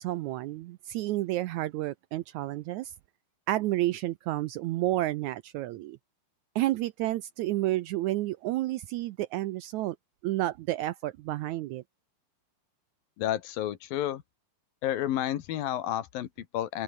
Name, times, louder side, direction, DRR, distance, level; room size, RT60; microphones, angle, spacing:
voice 1, 0.0-2.9 3.5-6.0 6.5-9.9 10.2-11.8, right 16 dB, 85° right, 1.7 m, -30 dB
voice 2, 13.2-14.2 14.8-16.8, left 12 dB, 85° left, 3.3 m, -31 dB
open air
omnidirectional pair, 4.0 m